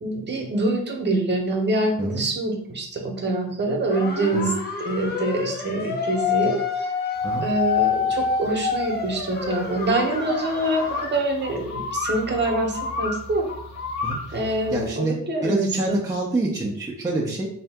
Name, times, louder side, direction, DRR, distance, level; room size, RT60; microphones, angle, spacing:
voice 1, 0.0-4.5 4.8-6.6 7.4-13.5 14.3-16.0, right 2 dB, 35° right, 2 dB, 1.0 m, -25 dB
sound 1, 3.9-11.1, left 5 dB, 35° left, 0.7 m, -27 dB
sound 2, 7.2-14.9, left 3 dB, 60° left, 1.0 m, -34 dB
voice 2, 14.0-15.2 15.4-17.5, right 2 dB, 10° right, -3 dB, 0.6 m, -27 dB
3.4 x 2.8 x 3.5 m, 0.62 s
cardioid pair, 90°, 30 cm